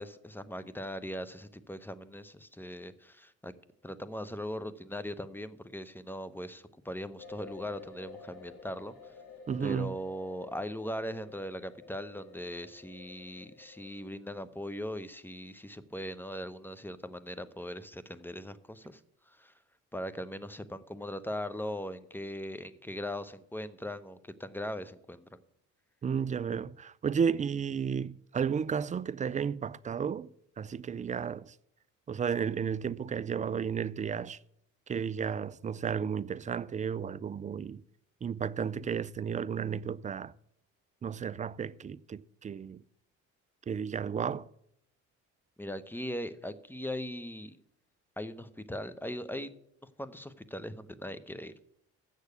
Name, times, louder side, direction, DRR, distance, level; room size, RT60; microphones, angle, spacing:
voice 1, 0.0-3.5 3.8-9.1 9.6-19.0 19.3-19.5 19.9-25.4 45.6-47.6 48.2-49.5 50.0-51.5, equal, 5° left, 0.7 m, -40 dB
sound 1, 7.2-14.1, left 4 dB, 60° left, 2.6 m, -51 dB
voice 2, 9.5-10.0 26.0-30.3 30.6-31.4 32.1-34.4 34.9-37.8 38.2-40.3 41.0-42.8 43.7-44.5, right 7 dB, 20° right, 0.3 m, -33 dB
8.0 x 6.5 x 8.2 m
supercardioid pair, 65°, 36 cm